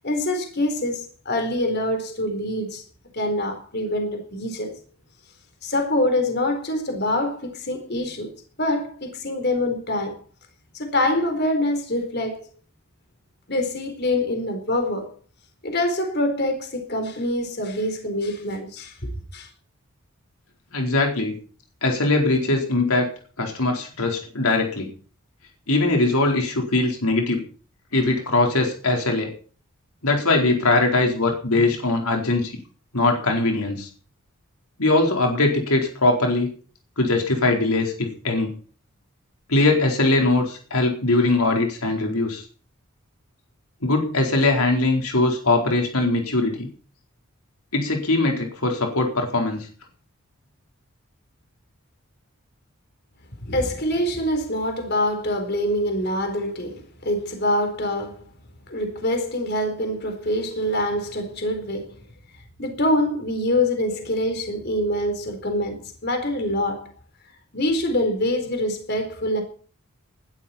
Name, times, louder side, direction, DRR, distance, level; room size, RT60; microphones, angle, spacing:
voice 1, 0.0-2.8 3.1-4.7 5.6-8.3 8.6-10.2 10.7-12.4 13.5-15.1 15.6-19.5 53.4-58.3 58.7-62.0 62.6-66.9 67.5-69.4, left 1 dB, 50° left, 4.1 m, -25 dB
voice 2, 20.7-21.4 21.8-23.1 23.4-24.9 25.7-27.4 27.9-29.3 30.0-32.6 32.9-33.9 34.8-36.5 37.0-38.5 39.5-42.4 43.8-46.7 47.7-49.7, left 2 dB, 85° left, 4.3 m, -21 dB
19.5 x 12.5 x 4.4 m
head